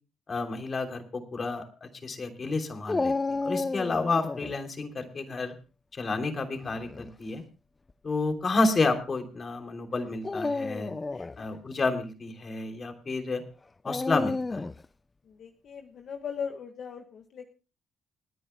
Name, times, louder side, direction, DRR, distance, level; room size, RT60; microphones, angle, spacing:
voice 1, 0.3-5.5 5.9-7.4 8.0-10.9 11.4-13.4 13.8-14.6, left 3 dB, 40° left, 4 dB, 3.1 m, -30 dB
Dog, 2.9-4.5 6.6-7.1 7.9-8.0 10.1-11.4 13.8-14.8, left 3 dB, 25° left, 0.5 m, -31 dB
voice 2, 15.3-17.5, left 7 dB, 65° left, 4 dB, 1.5 m, -38 dB
29.5 x 10.0 x 2.2 m, 0.33 s
cardioid pair, 90°, 0 cm